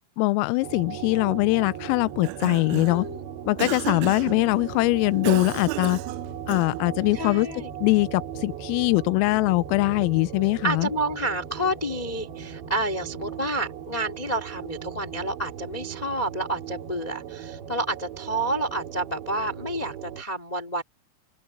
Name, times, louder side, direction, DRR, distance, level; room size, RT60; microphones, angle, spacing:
voice 1, 0.2-3.1 3.5-6.0 6.5-7.5 7.8-10.9, left 23 dB, 85° left, 3.3 m, -22 dB
sound 1, 0.6-20.2, right 9 dB, 60° right, 4.6 m, -38 dB
Cough, 2.1-3.1 3.6-4.4 5.2-6.9, right 21 dB, 90° right, 2.6 m, -33 dB
voice 2, 2.9-3.2 7.1-7.7 10.0-10.1 10.6-20.8, right 1 dB, 15° left, 1.6 m, -29 dB
open air
omnidirectional pair, 5.9 m